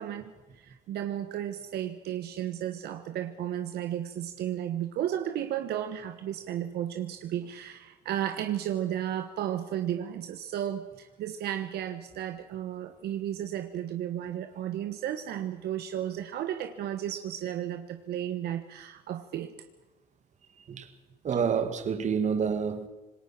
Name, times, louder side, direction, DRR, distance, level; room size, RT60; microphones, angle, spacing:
voice 1, 0.0-19.5, right 11 dB, 70° right, 1.4 m, -33 dB
voice 2, 21.2-22.9, right 6 dB, 45° right, 2.3 m, -28 dB
27.0 x 20.5 x 6.1 m
cardioid pair, 110°, 17 cm